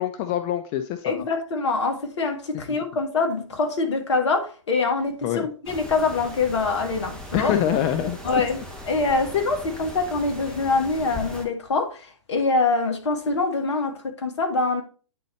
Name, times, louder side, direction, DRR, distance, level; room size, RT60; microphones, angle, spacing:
voice 1, 0.0-1.2 5.2-5.5 7.3-8.2, left 10 dB, 25° left, 0.4 m, -25 dB
voice 2, 1.0-7.5 8.2-8.6 8.9-14.8, left 3 dB, 60° left, 1.4 m, -24 dB
sound 1, 5.6-11.4, left 1 dB, 5° left, 1.0 m, -38 dB
9.3 x 3.9 x 3.1 m
figure-of-eight pair, 120°, 17 cm